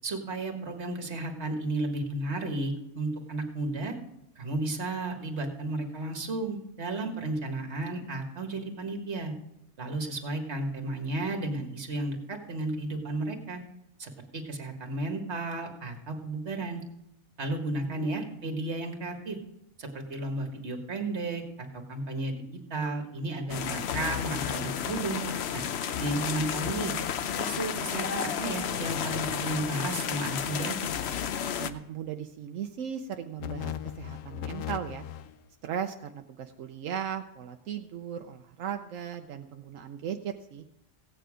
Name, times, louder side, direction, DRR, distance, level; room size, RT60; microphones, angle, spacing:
voice 1, 0.0-4.0 4.4-9.3 9.8-13.6 14.0-16.8 17.4-19.4 19.8-21.4 21.7-25.2 25.5-25.6 26.0-26.9 27.4-30.8, right 2 dB, 60° right, 4 dB, 1.9 m, -33 dB
voice 2, 17.8-18.1 31.6-35.0 35.6-40.6, right 8 dB, 85° right, 5 dB, 1.1 m, -37 dB
sound 1, 23.5-31.7, left 8 dB, 65° left, 0.9 m, -32 dB
sound 2, 23.9-25.1 25.5-25.6 25.9-26.7 27.0-27.3 28.7-29.8 30.9-31.8 33.4-35.4, left 11 dB, 90° left, 1.0 m, -39 dB
16.0 x 9.2 x 5.0 m, 0.83 s
omnidirectional pair, 1.3 m